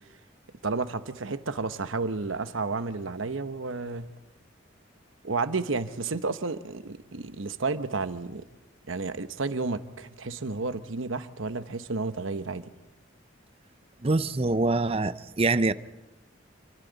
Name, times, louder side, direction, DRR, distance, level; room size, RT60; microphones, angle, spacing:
voice 1, 0.6-4.1 5.2-8.5 8.9-12.7, right 3 dB, 90° right, 11 dB, 1.0 m, -31 dB
voice 2, 14.0-15.7, right 3 dB, 30° right, 14 dB, 0.6 m, -24 dB
28.5 x 23.5 x 4.0 m, 0.99 s
head